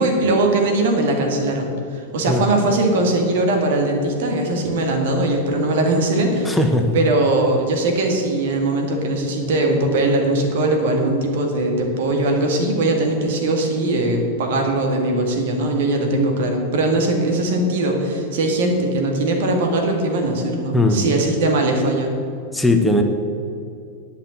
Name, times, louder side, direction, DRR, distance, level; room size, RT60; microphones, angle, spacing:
voice 1, 0.0-6.6 6.9-22.1, right 2 dB, 55° right, 2 dB, 1.9 m, -20 dB
voice 2, 6.4-7.0 20.7-21.0 22.5-23.0, left 1 dB, 5° left, 3 dB, 1.2 m, -18 dB
10.5 x 5.9 x 7.6 m, 2.5 s
figure-of-eight pair, 90°, 0 cm